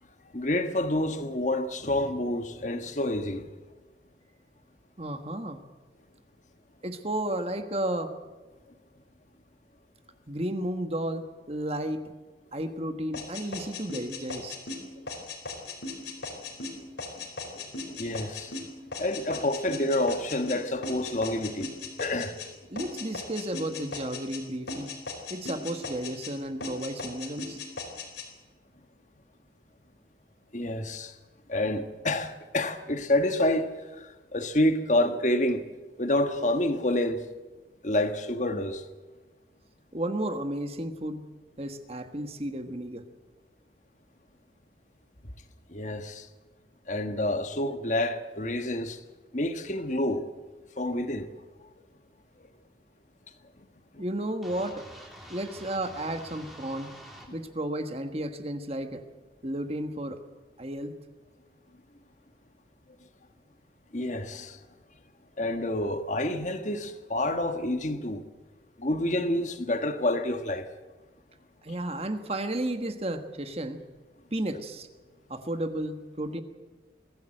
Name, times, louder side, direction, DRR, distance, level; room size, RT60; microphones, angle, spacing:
voice 1, 0.3-3.5 15.0-15.1 16.4-16.5 17.2-17.3 17.5-18.6 19.0-21.7 22.0-22.3 30.5-31.1 31.5-35.6 36.0-37.2 37.8-38.8 45.7-46.3 46.9-49.0 49.3-50.2 50.8-51.3 53.9-54.0 63.9-64.6 65.4-68.2 68.8-70.7, left 1 dB, 40° left, 1.4 m, -28 dB
voice 2, 5.0-5.6 6.8-8.2 10.3-12.1 12.5-14.6 22.7-24.9 25.3-27.6 39.9-41.2 41.6-43.1 54.0-54.9 55.3-57.0 57.3-59.0 59.4-60.2 60.6-61.0 71.6-73.8 74.3-74.9 75.3-76.4, right 1 dB, 35° right, 1.4 m, -33 dB
sound 1, 13.1-22.5 22.8-24.4 24.7-26.3 26.6-28.3, left 3 dB, 75° left, 4.5 m, -38 dB
sound 2, 54.4-57.3, equal, ahead, 3.4 m, -47 dB
23.0 x 15.5 x 7.8 m
head